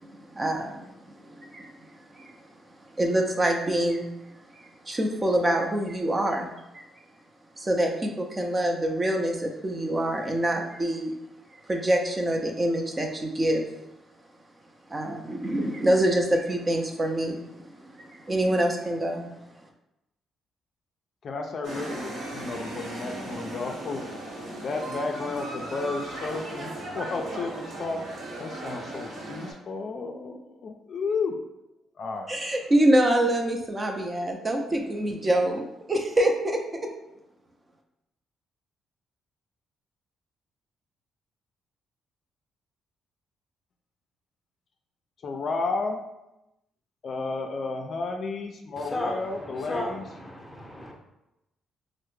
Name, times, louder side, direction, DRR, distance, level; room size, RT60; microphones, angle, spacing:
voice 1, 0.0-1.7 2.1-2.3 3.0-4.1 4.8-6.5 6.7-6.8 7.6-11.1 11.7-13.6 14.9-19.2 32.3-36.9, right 1 dB, 25° right, 2 dB, 0.4 m, -25 dB
voice 2, 21.2-24.0 24.6-28.0 28.4-31.3 32.0-32.3 45.2-46.0 47.0-50.1, left 4 dB, 50° left, 4 dB, 0.3 m, -32 dB
sound 1, 21.6-29.5, right 1 dB, 70° right, 0.9 m, -37 dB
voice 3, 48.8-49.9 50.2-50.9, left 1 dB, 5° left, -1 dB, 0.7 m, -34 dB
3.2 x 2.0 x 3.1 m, 0.92 s
cardioid pair, 90°, 0 cm